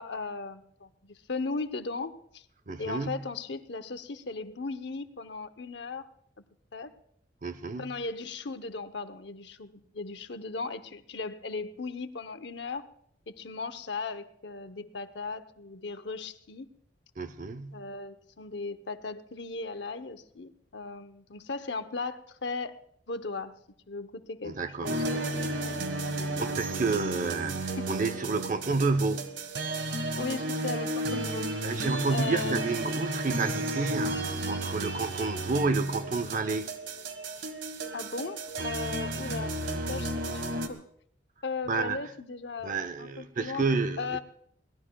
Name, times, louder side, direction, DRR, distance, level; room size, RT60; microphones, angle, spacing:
voice 1, 0.0-2.4 2.8-6.1 6.7-6.9 7.8-12.9 13.3-16.7 17.7-22.8 23.1-23.5 23.9-25.8 26.2-26.4 30.1-32.6 37.9-39.6 39.9-40.4 40.7-40.8 41.4-43.6 44.0-44.2, left 4 dB, 65° left, 0.8 m, -37 dB
voice 2, 2.7-3.2 7.4-7.9 17.2-17.8 24.4-25.0 26.2-29.3 31.6-36.7 41.7-42.0 42.6-44.2, right 3 dB, 45° right, 0.7 m, -30 dB
sound 1, 24.8-40.7, right 2 dB, 80° right, 1.6 m, -33 dB
22.5 x 17.5 x 2.3 m
head